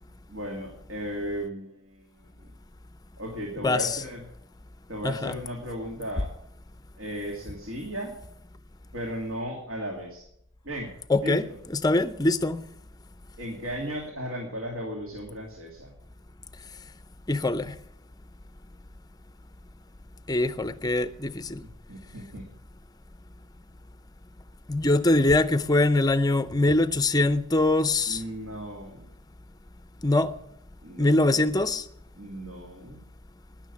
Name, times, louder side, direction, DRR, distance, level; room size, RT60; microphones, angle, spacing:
voice 1, 0.3-2.5 3.2-4.3 4.9-6.3 7.0-8.1 8.9-10.3 10.6-10.9 11.2-11.6 13.4-15.9 21.9-22.4 28.1-29.0 30.8-31.4 32.2-33.0, equal, 65° right, 2.5 m, -36 dB
voice 2, 3.6-4.0 5.0-5.4 11.1-11.4 11.7-12.7 17.3-17.7 20.3-21.6 24.7-28.2 30.0-30.3 31.0-31.8, left 2 dB, 15° left, 0.5 m, -23 dB
12.5 x 10.0 x 7.1 m
head